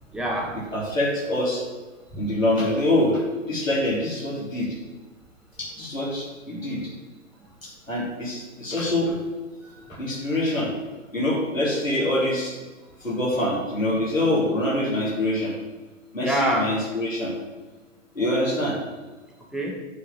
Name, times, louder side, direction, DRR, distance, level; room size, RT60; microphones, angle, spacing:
voice 1, 0.1-0.6 2.1-2.2 9.6-10.3 16.2-16.7 19.5-19.7, right 1 dB, ahead, -2 dB, 0.7 m, -27 dB
voice 2, 0.7-1.6 2.2-3.2 3.5-4.8 5.6-6.9 7.6-9.2 10.0-10.7 11.1-12.5 13.0-15.5 16.1-17.3 18.1-18.8, left 1 dB, 85° left, -6 dB, 2.9 m, -25 dB
6.9 x 4.7 x 7.0 m, 1.3 s
figure-of-eight pair, 115°, 39 cm